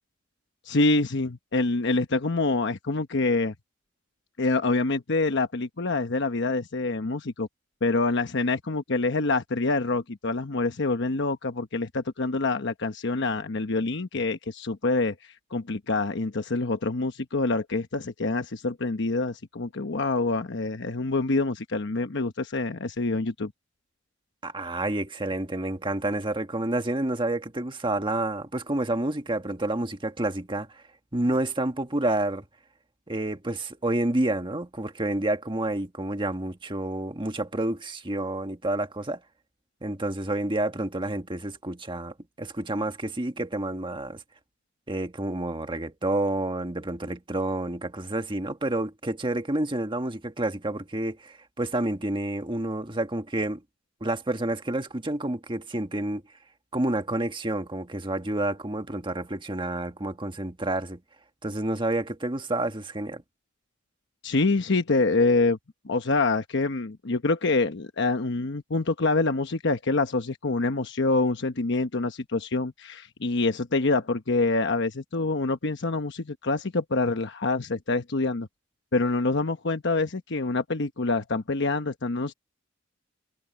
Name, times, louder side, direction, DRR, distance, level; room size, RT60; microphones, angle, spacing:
voice 1, 0.7-3.5 4.4-7.5 7.8-15.1 15.5-23.5 64.2-65.6 65.8-78.5 78.9-82.3, left 3 dB, 65° left, 1.0 m, -26 dB
voice 2, 24.4-30.8 31.1-32.4 33.1-39.2 39.8-44.2 44.9-53.6 54.0-56.2 56.7-61.0 61.4-63.2, right 1 dB, 25° right, 1.6 m, -29 dB
head